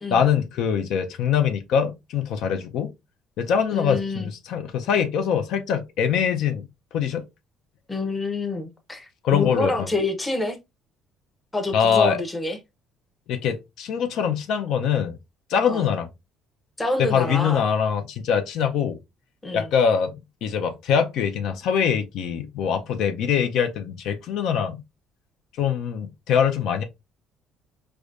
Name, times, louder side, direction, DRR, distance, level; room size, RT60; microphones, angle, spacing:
voice 1, 0.1-2.9 3.4-6.7 6.9-7.2 9.2-9.9 11.7-12.2 13.3-15.2 15.5-16.1 17.0-19.0 19.5-24.8 25.5-26.8, left 7 dB, 70° left, 0.5 m, -23 dB
voice 2, 3.7-4.3 7.9-10.6 11.5-12.6 15.7-15.9 16.8-17.6 19.4-19.7, left 2 dB, 15° left, 0.7 m, -27 dB
4.8 x 2.2 x 2.4 m
cardioid pair, 135°, 0 cm